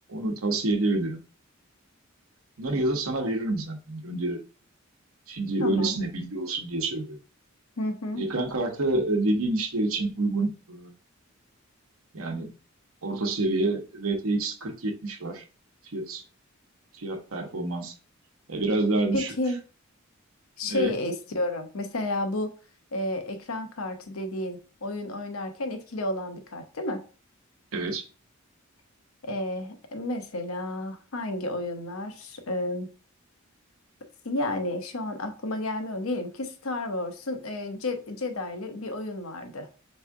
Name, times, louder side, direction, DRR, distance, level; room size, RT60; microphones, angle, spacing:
voice 1, 0.1-1.2 2.6-4.4 5.3-7.2 8.1-10.9 12.1-12.5 13.0-15.4 15.8-16.2 17.0-17.9 18.5-19.3 20.7-20.9 27.7-28.0, right 2 dB, 80° right, 4 dB, 0.9 m, -28 dB
voice 2, 5.6-6.0 7.8-8.2 19.1-19.6 20.6-22.5 22.9-27.0 29.2-32.9 34.2-39.7, left 2 dB, 80° left, 6 dB, 0.9 m, -31 dB
3.6 x 3.2 x 4.6 m, 0.36 s
head